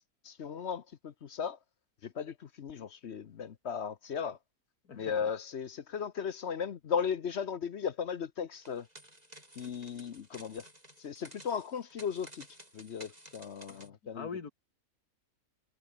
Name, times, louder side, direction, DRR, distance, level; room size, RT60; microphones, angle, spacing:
voice 1, 0.2-1.6 2.0-4.4 4.9-8.9 9.6-10.6 11.0-12.4 12.7-14.3, left 7 dB, 50° left, 1.0 m, -36 dB
voice 2, 4.9-5.3 9.8-9.9 13.7-14.5, left 5 dB, 80° left, 2.7 m, -44 dB
sound 1, 8.5-13.9, right 1 dB, 25° right, 7.8 m, -54 dB
omnidirectional pair, 1.6 m